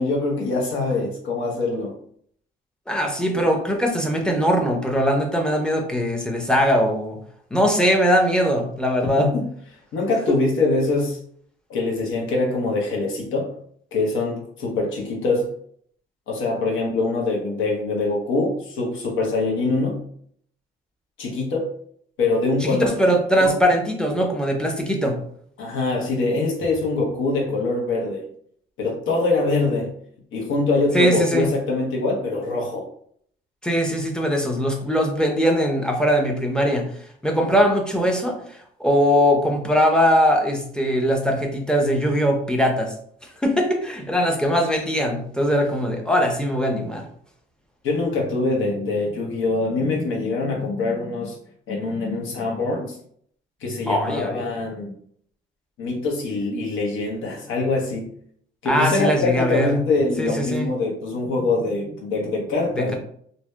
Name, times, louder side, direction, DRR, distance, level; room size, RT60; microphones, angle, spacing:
voice 1, 0.0-2.0 9.0-9.5 9.9-11.2 11.7-13.5 13.9-15.5 16.3-20.0 21.2-21.7 22.2-22.9 23.4-23.5 24.1-24.3 25.6-28.3 28.8-29.9 30.3-32.9 47.8-51.4 51.7-53.0 53.6-54.9 55.8-58.1 58.6-63.0, left 3 dB, 80° left, 0 dB, 0.8 m, -24 dB
voice 2, 2.9-7.2 7.5-9.3 22.6-25.2 30.9-31.5 33.6-36.9 37.2-42.9 43.4-47.1 53.9-54.5 58.6-59.8 60.2-60.7 62.8-62.9, equal, 5° left, 1 dB, 0.5 m, -21 dB
2.6 x 2.1 x 2.2 m, 0.63 s
cardioid pair, 90°, 20 cm